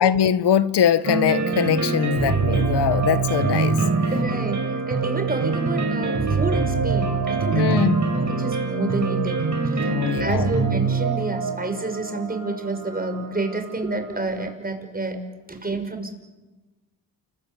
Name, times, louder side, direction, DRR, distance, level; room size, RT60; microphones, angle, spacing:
voice 1, 0.0-4.1 7.5-8.1 9.9-10.5, left 9 dB, 70° left, 1.4 m, -22 dB
sound 1, 1.0-14.0, right 4 dB, 45° right, 6.0 m, -24 dB
voice 2, 4.1-7.8 8.1-16.1, right 2 dB, 20° right, 6.0 m, -29 dB
29.5 x 22.0 x 9.1 m
cardioid pair, 80°, 42 cm